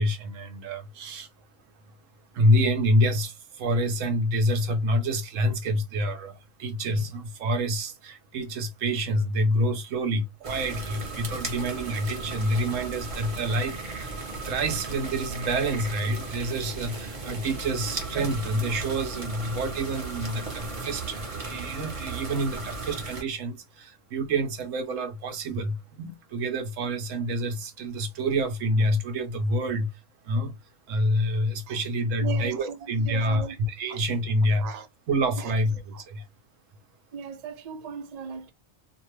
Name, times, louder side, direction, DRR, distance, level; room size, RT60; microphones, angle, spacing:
voice 1, 0.0-1.5 2.3-14.1 14.4-29.9 30.2-30.6 30.9-34.7 35.1-36.3, equal, 85° right, 1.1 m, -27 dB
sound 1, 10.4-23.2, right 3 dB, 30° right, 0.9 m, -36 dB
voice 2, 32.2-34.0 34.6-34.9 35.4-35.5 35.9-36.0 37.1-38.5, right 6 dB, 60° right, 0.4 m, -38 dB
2.9 x 2.2 x 3.0 m
omnidirectional pair, 1.3 m